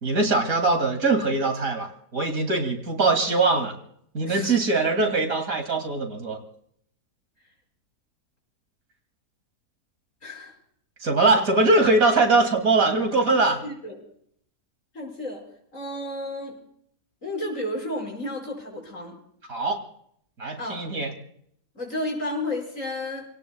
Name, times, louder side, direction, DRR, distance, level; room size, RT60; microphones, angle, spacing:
voice 1, 0.0-3.7 4.1-6.4 11.0-13.6 19.5-19.8 20.4-21.1, right 3 dB, 60° right, 4 dB, 3.0 m, -22 dB
voice 2, 4.3-4.6 10.2-10.5 11.4-11.5 13.3-14.0 14.9-15.4 15.7-16.6 17.2-19.2 20.6-20.8 21.7-23.3, left 1 dB, 55° left, -1 dB, 6.0 m, -32 dB
29.0 x 18.0 x 2.3 m, 0.68 s
omnidirectional pair, 1.7 m